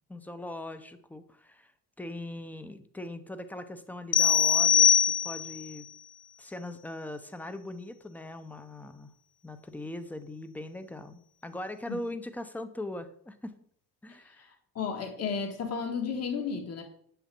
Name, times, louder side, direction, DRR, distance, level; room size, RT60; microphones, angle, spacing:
voice 1, 0.1-1.7 2.0-5.9 6.4-9.1 9.4-13.5 14.0-14.5, left 1 dB, 5° left, 10 dB, 0.7 m, -40 dB
sound 1, 4.1-5.7, left 8 dB, 75° left, 0.7 m, -22 dB
voice 2, 14.1-16.8, left 5 dB, 40° left, 4 dB, 1.7 m, -34 dB
9.6 x 6.9 x 7.5 m, 0.63 s
cardioid pair, 175°, 39 cm